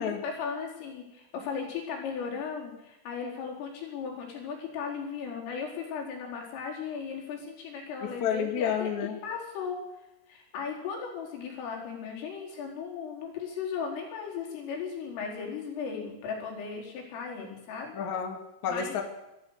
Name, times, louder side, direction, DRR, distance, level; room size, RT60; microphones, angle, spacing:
voice 1, 0.0-9.8 10.3-17.9 18.7-19.0, left 6 dB, 80° left, -1 dB, 7.0 m, -36 dB
voice 2, 8.0-9.2 17.9-19.0, left 7 dB, 45° left, 3 dB, 2.9 m, -30 dB
23.0 x 14.0 x 8.2 m, 0.92 s
omnidirectional pair, 5.7 m